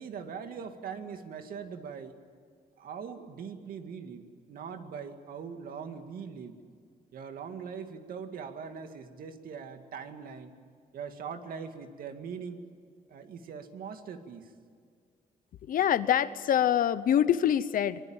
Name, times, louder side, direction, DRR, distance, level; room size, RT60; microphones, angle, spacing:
voice 1, 0.0-2.2 2.8-6.6 7.1-10.5 10.9-12.6 13.1-14.5, right 6 dB, 70° right, 7 dB, 2.2 m, -41 dB
voice 2, 15.6-18.0, left 10 dB, 65° left, 15 dB, 1.0 m, -25 dB
23.5 x 21.5 x 9.0 m, 2.2 s
cardioid pair, 150°, 15 cm